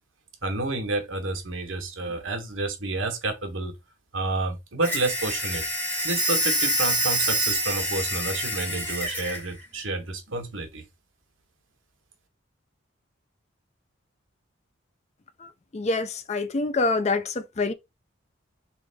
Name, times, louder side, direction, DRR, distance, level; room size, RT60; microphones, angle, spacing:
voice 1, 0.4-3.7 4.1-5.6 6.0-10.8, right 2 dB, 75° right, 1.3 m, -29 dB
sound 1, 4.8-9.4, equal, 10° left, 2.0 m, -26 dB
voice 2, 15.4-17.7, left 3 dB, 35° left, 0.5 m, -26 dB
3.7 x 3.4 x 3.5 m
head